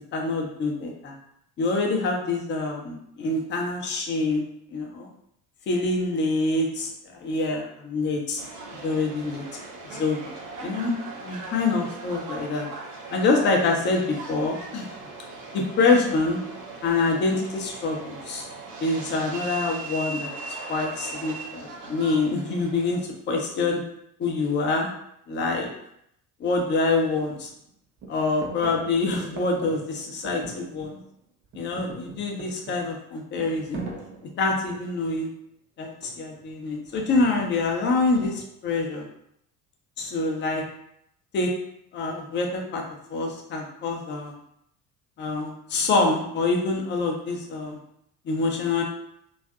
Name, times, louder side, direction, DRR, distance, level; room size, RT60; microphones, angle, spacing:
voice 1, 0.1-1.1 1.6-4.4 4.7-5.1 5.7-8.4 8.8-9.4 9.9-10.2 10.6-10.9 11.2-12.7 13.1-14.9 15.5-16.4 16.8-18.5 18.8-23.8 24.2-24.9 25.3-25.7 26.4-27.5 28.1-31.0 31.5-33.8 34.4-35.3 35.8-39.1 40.0-40.6 41.3-41.5 41.9-42.8 43.1-44.3 45.2-47.8 48.2-48.8, left 3 dB, 25° left, 1 dB, 0.5 m, -26 dB
Subway metro underground, 8.4-23.0, right 3 dB, 70° right, 0.6 m, -39 dB
sound 1, 26.6-26.7 27.1-27.7 28.0-31.2 31.4-35.1 36.0-36.5, right 3 dB, 25° right, 0.5 m, -41 dB
2.5 x 2.3 x 2.3 m, 0.74 s
figure-of-eight pair, 60°, 48 cm